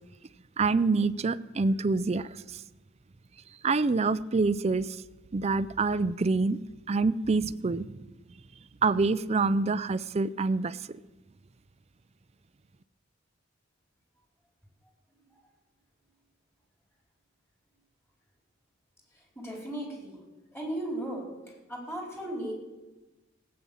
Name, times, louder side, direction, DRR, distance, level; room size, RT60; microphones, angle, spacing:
voice 1, 0.6-2.3 3.6-4.9 5.3-6.6 6.9-8.1 8.8-10.8, right 3 dB, 35° right, 16 dB, 0.4 m, -26 dB
voice 2, 19.4-20.2 20.5-21.3 21.7-22.5, right 1 dB, 15° left, -1 dB, 4.1 m, -36 dB
17.0 x 8.8 x 7.1 m, 1.1 s
head